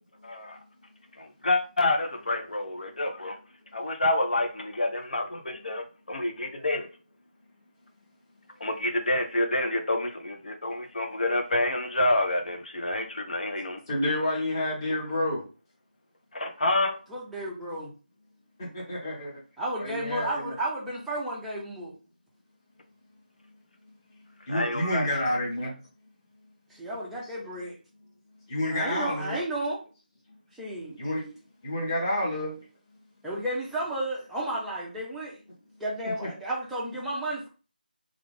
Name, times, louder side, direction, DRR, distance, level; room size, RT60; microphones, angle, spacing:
voice 1, 0.2-0.6 1.2-3.4 3.7-6.9 8.6-13.8 16.3-16.9 24.5-25.1, left 2 dB, 60° left, 4 dB, 0.9 m, -28 dB
voice 2, 13.9-15.5 18.6-19.3 19.8-20.5 23.5-23.6 23.9-25.8 28.4-29.4 30.3-30.4 31.0-31.2 31.6-32.7 36.2-36.3, left 1 dB, 25° left, -5 dB, 1.4 m, -30 dB
voice 3, 17.1-17.9 19.6-21.9 26.7-27.8 28.7-29.8 30.5-31.0 33.2-35.4 35.8-37.5, right 1 dB, ahead, -7 dB, 0.5 m, -32 dB
3.2 x 2.5 x 3.5 m, 0.36 s
figure-of-eight pair, 165°, 5 cm